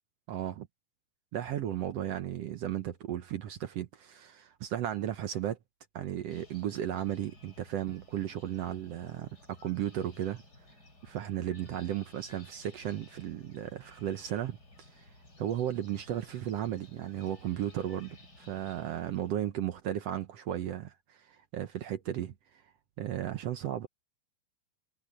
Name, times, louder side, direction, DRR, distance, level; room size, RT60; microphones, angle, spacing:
voice 1, 0.3-0.7 1.3-5.6 5.9-10.4 11.0-15.1 15.4-18.1 18.4-22.3 23.0-23.9, right 11 dB, 75° right, 1.5 m, -35 dB
sound 1, 6.3-19.3, left 2 dB, 25° left, 6.7 m, -56 dB
omnidirectional pair, 4.0 m